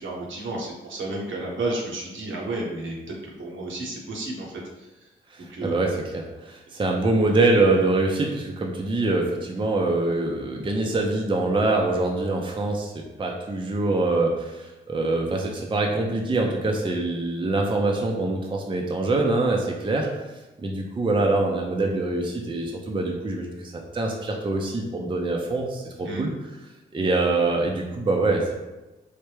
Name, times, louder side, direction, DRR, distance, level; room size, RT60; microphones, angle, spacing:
voice 1, 0.0-3.0 3.2-4.9 5.4-5.8 26.0-26.2, right 2 dB, 65° right, -2 dB, 0.8 m, -32 dB
voice 2, 5.3-20.1 20.6-26.3 26.9-28.5, right 2 dB, 25° right, 0 dB, 0.5 m, -24 dB
3.2 x 2.1 x 3.2 m, 1.1 s
supercardioid pair, 45°, 21 cm